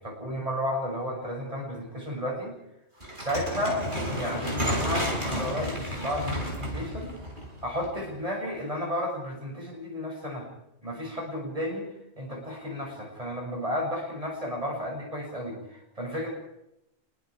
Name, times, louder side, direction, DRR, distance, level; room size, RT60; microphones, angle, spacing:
voice 1, 0.0-2.5 3.2-3.9 4.1-7.2 7.6-10.5 10.8-11.9 12.2-16.3, equal, 30° right, -1 dB, 7.5 m, -33 dB
sound 1, 3.0-8.1, equal, 50° right, 5.4 m, -31 dB
27.5 x 22.0 x 4.9 m, 0.84 s
omnidirectional pair, 1.1 m